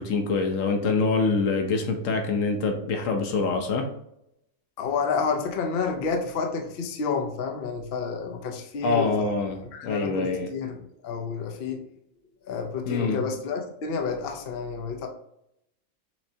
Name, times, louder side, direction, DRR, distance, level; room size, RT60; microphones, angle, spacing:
voice 1, 0.0-3.9 8.8-10.5 12.9-13.2, left 4 dB, 75° left, 4 dB, 1.1 m, -25 dB
voice 2, 4.8-9.3 9.7-11.8 12.5-15.1, left 5 dB, 50° left, 3 dB, 0.8 m, -30 dB
6.1 x 3.2 x 2.7 m, 0.78 s
omnidirectional pair, 1.4 m